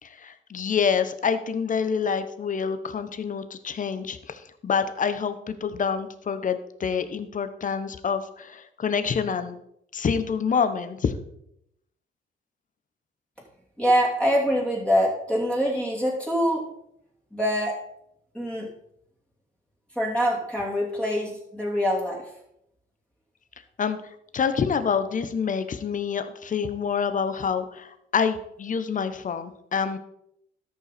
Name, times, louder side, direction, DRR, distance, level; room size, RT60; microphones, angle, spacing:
voice 1, 0.0-9.6 9.9-11.1 23.8-24.0 24.3-30.0, left 6 dB, 40° left, 11 dB, 1.0 m, -27 dB
voice 2, 13.8-16.6 17.3-17.8 18.3-18.7 19.9-22.2, equal, 5° left, -4 dB, 2.9 m, -24 dB
13.0 x 5.7 x 4.2 m, 0.76 s
cardioid pair, 90°, 20 cm